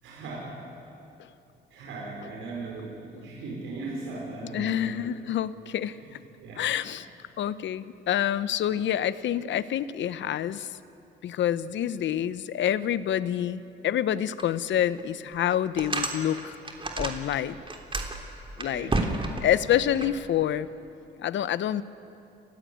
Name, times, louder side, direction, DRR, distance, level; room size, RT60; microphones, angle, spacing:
voice 1, 0.0-0.7 1.7-5.1 6.0-6.9 18.7-19.0, right 3 dB, 85° right, -3 dB, 5.5 m, -38 dB
voice 2, 4.5-6.2 6.6-7.1 7.4-10.8 11.2-16.6 17.0-17.6 18.6-18.9 19.4-20.7 21.2-21.8, left 10 dB, 70° left, 15 dB, 0.9 m, -27 dB
sound 1, 14.4-14.5 15.0-15.1 15.5-17.4 17.6-20.1, right 2 dB, 25° right, 3.4 m, -30 dB
29.5 x 16.0 x 9.4 m, 2.8 s
cardioid pair, 90°, 20 cm